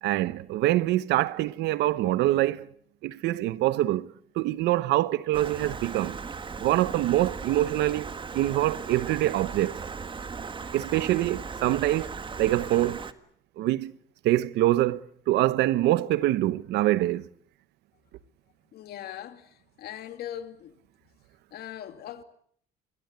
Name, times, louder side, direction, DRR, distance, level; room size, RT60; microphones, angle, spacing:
voice 1, 0.0-2.7 3.0-6.2 6.6-8.1 8.3-9.8 10.7-13.0 13.6-14.0 14.2-17.3, right 15 dB, 85° right, 1.0 m, -25 dB
Stream, 5.3-13.1, right 5 dB, 30° right, 1.7 m, -37 dB
voice 2, 18.7-19.5 19.8-20.7 21.5-22.2, left 11 dB, 70° left, 2.5 m, -39 dB
27.0 x 21.0 x 8.1 m
cardioid pair, 110°, 17 cm